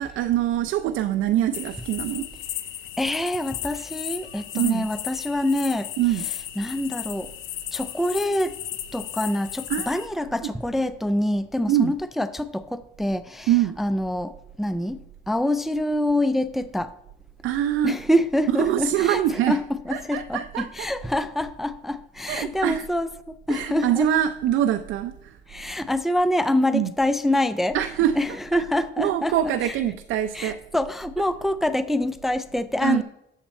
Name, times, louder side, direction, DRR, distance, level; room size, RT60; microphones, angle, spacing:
voice 1, 0.0-2.3 4.5-4.8 6.0-6.3 9.7-10.0 10.4-10.5 11.7-11.9 13.5-13.8 17.4-18.0 18.5-19.6 19.9-20.9 22.3-22.9 23.5-25.4 26.7-26.9 27.7-28.2 28.5-28.6 29.0-30.6 32.8-33.0, right 11 dB, 85° right, 9 dB, 0.5 m, -24 dB
sound 1, 1.5-10.1, left 12 dB, 80° left, 0.7 m, -35 dB
voice 2, 3.0-5.9 6.6-7.3 7.7-8.5 8.9-13.5 13.8-15.0 15.3-16.9 17.8-19.2 19.5-19.6 19.9-23.1 23.5-24.1 25.5-27.8 28.2-29.3 30.3-33.0, left 1 dB, ahead, 12 dB, 0.4 m, -25 dB
8.0 x 7.3 x 4.2 m, 0.83 s
cardioid pair, 90°, 20 cm